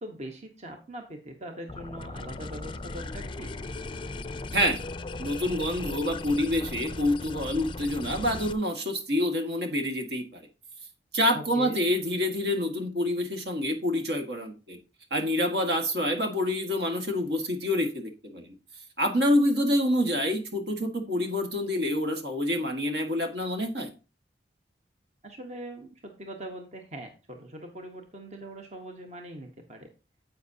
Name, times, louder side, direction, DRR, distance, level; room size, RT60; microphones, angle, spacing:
voice 1, 0.0-3.6 11.3-11.8 25.2-29.9, right 1 dB, 40° right, 3 dB, 1.1 m, -41 dB
sound 1, 1.7-8.5, left 2 dB, 30° left, 0.5 m, -37 dB
voice 2, 4.5-4.8 5.2-10.4 11.1-14.8 15.1-18.5 19.0-23.9, left 1 dB, 65° right, 4 dB, 1.8 m, -27 dB
10.5 x 7.9 x 2.8 m, 0.32 s
head